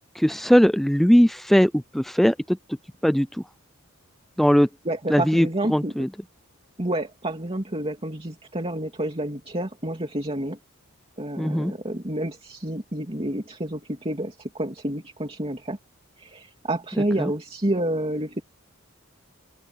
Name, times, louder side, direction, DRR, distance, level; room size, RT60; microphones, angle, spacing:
voice 1, 0.2-2.6 3.0-3.4 4.4-4.7 5.1-6.1 11.4-11.7 17.2-17.3, equal, ahead, 0.3 m, -19 dB
voice 2, 4.8-6.0 6.8-10.6 11.2-15.8 16.2-18.4, right 1 dB, 25° right, 2.8 m, -29 dB
open air
head